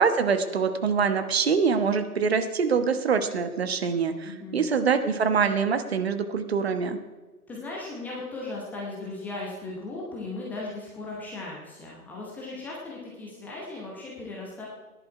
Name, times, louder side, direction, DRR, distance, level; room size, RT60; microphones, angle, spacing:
voice 1, 0.0-7.0, right 5 dB, 40° right, 9 dB, 1.2 m, -24 dB
voice 2, 4.2-4.7 7.5-14.7, left 2 dB, 5° left, -4 dB, 0.9 m, -37 dB
17.5 x 11.0 x 4.7 m, 1.2 s
figure-of-eight pair, 140°, 46 cm